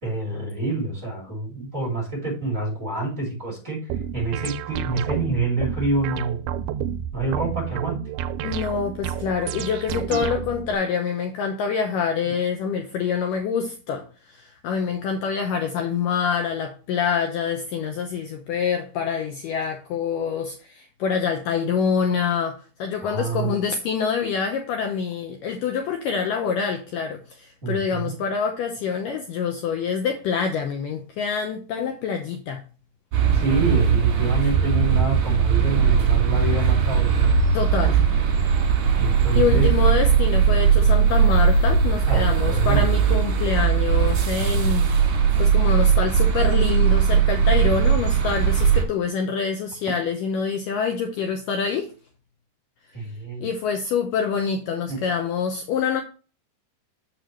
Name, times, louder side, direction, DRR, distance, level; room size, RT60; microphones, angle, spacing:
voice 1, 0.0-3.8 4.1-6.4 7.1-8.0 9.9-10.2 23.0-23.6 27.6-28.1 33.3-37.3 39.0-39.6 42.1-42.9 52.9-53.4 54.9-55.0, right 3 dB, 20° right, 2.8 m, -27 dB
sound 1, 3.9-10.8, right 9 dB, 85° right, 2.5 m, -30 dB
voice 2, 8.4-32.6 37.5-38.0 38.8-38.9 39.3-44.9 45.4-51.9 53.4-56.0, left 6 dB, 75° left, 2.1 m, -26 dB
sound 2, 33.1-48.8, right 7 dB, 60° right, 2.7 m, -19 dB
7.6 x 6.6 x 3.1 m
omnidirectional pair, 4.5 m